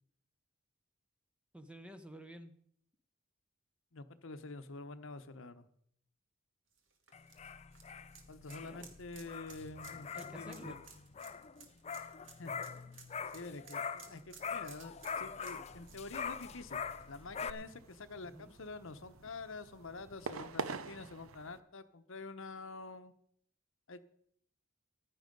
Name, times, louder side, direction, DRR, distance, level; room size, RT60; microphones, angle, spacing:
voice 1, 1.5-2.5 8.6-8.9 9.2-9.3 10.1-10.8 18.2-18.5, equal, 5° right, 9 dB, 0.9 m, -51 dB
voice 2, 3.9-5.6 8.3-10.7 12.4-12.6 13.3-23.1 23.9-24.0, left 3 dB, 65° left, 10 dB, 0.9 m, -47 dB
sound 1, 6.7-17.5 17.9-18.0 19.4-19.5, right 6 dB, 65° right, 2.0 m, -58 dB
sound 2, 7.1-14.1 14.4-17.5, left 6 dB, 30° left, 0.5 m, -43 dB
sound 3, 15.7-21.6, right 4 dB, 80° right, 0.8 m, -47 dB
14.5 x 10.5 x 5.3 m, 0.66 s
head